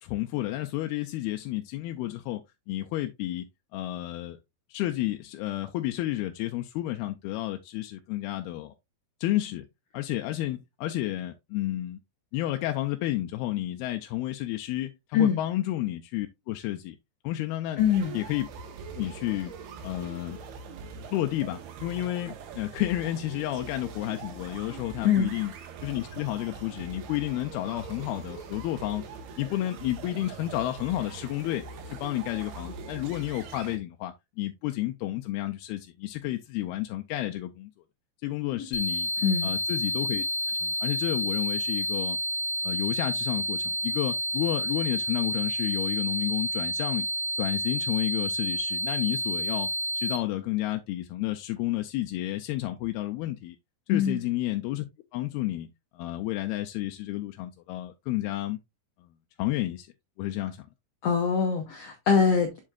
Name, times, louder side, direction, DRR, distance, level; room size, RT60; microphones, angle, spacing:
voice 1, 0.0-2.4 2.7-4.4 4.7-8.7 9.2-9.7 9.9-12.0 12.3-17.0 17.2-17.8 18.1-18.5 18.9-19.5 19.8-20.4 21.1-25.5 25.8-29.0 29.4-37.7 38.2-39.1 39.4-42.2 42.6-47.1 47.4-49.7 50.0-53.6 53.9-54.9 55.1-55.7 55.9-58.6 59.0-59.1 59.4-59.9 60.2-60.6, left 15 dB, 90° left, 2.6 m, -31 dB
voice 2, 17.8-18.2 25.0-25.3 39.2-39.5 53.9-54.2 61.0-62.5, left 7 dB, 75° left, 1.5 m, -23 dB
sound 1, 17.8-33.8, right 5 dB, 85° right, 3.3 m, -42 dB
sound 2, 38.7-50.2, equal, 60° left, 3.2 m, -30 dB
7.4 x 7.4 x 2.4 m
omnidirectional pair, 4.4 m